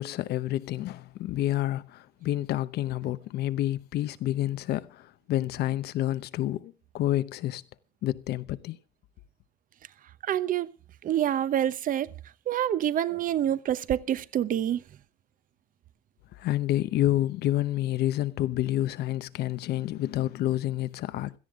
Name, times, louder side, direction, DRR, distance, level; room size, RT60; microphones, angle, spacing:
voice 1, 0.0-7.6 8.0-8.8 16.3-21.3, left 14 dB, 75° left, 0.9 m, -29 dB
voice 2, 10.2-10.7 11.0-12.1 12.5-14.8, right 11 dB, 55° right, 0.8 m, -27 dB
17.0 x 13.5 x 3.7 m
cardioid pair, 110°, 17 cm